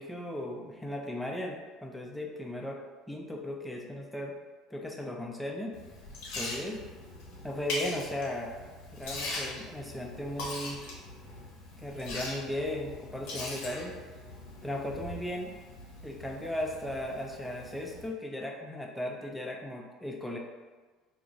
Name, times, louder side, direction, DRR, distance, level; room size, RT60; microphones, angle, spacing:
voice 1, 0.0-2.8 3.1-4.3 4.7-5.8 6.4-6.8 7.4-8.5 8.9-10.8 11.8-13.9 14.6-15.5 16.0-20.4, left 1 dB, 5° left, 0 dB, 0.5 m, -36 dB
Liquid, 5.7-18.1, left 2 dB, 70° left, 0.8 m, -41 dB
2.4 x 2.3 x 3.0 m, 1.3 s
hypercardioid pair, 75°, 0 cm